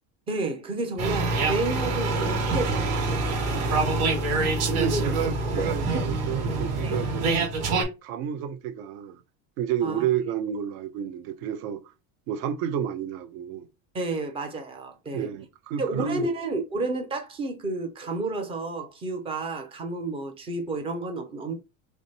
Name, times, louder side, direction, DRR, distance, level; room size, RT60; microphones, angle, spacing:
voice 1, 0.3-3.0 3.8-4.0 4.9-5.1 5.9-6.0 6.8-7.0 9.8-10.1 13.9-15.3 15.8-21.5, right 2 dB, 15° right, 0.4 m, -31 dB
sound 1, 1.0-7.8, right 3 dB, 35° right, 1.7 m, -26 dB
voice 2, 3.5-4.0 4.7-7.5 8.0-9.2 9.6-11.8 12.3-13.7 15.1-16.2, right 9 dB, 75° right, 0.8 m, -30 dB
3.5 x 3.1 x 4.0 m
cardioid pair, 175°, 41 cm